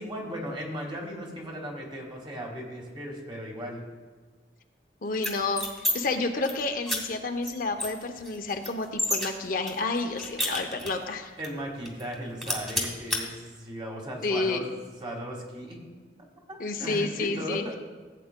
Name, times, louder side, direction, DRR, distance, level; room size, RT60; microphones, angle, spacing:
voice 1, 0.0-3.9 11.4-15.8 16.5-17.8, equal, 30° right, 0 dB, 1.6 m, -37 dB
voice 2, 5.0-5.7 5.9-11.3 14.2-14.7 16.6-17.6, left 3 dB, 50° left, 6 dB, 0.6 m, -30 dB
sound 1, 5.1-5.9 6.3-6.5 6.9-7.0 7.4-7.5 7.8-9.3 9.7-11.1 11.4-11.5 11.8-12.1 12.4-13.2, left 1 dB, ahead, 1.3 m, -30 dB
15.5 x 8.4 x 2.2 m, 1.4 s
head